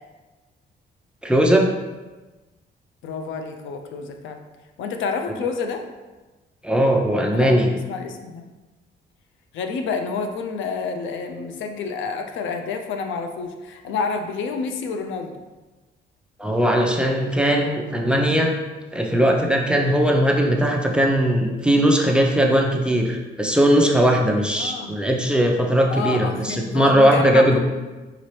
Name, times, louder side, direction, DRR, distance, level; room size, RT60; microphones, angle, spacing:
voice 1, 1.2-1.7 6.6-7.7 16.4-18.5 18.9-27.6, equal, 5° right, 0 dB, 0.5 m, -19 dB
voice 2, 3.0-4.4 4.8-5.8 7.3-7.6 7.9-8.4 9.5-15.4 24.6-25.0 25.9-27.6, left 5 dB, 75° left, 5 dB, 0.5 m, -29 dB
5.0 x 2.8 x 3.2 m, 1.2 s
cardioid pair, 90°, 20 cm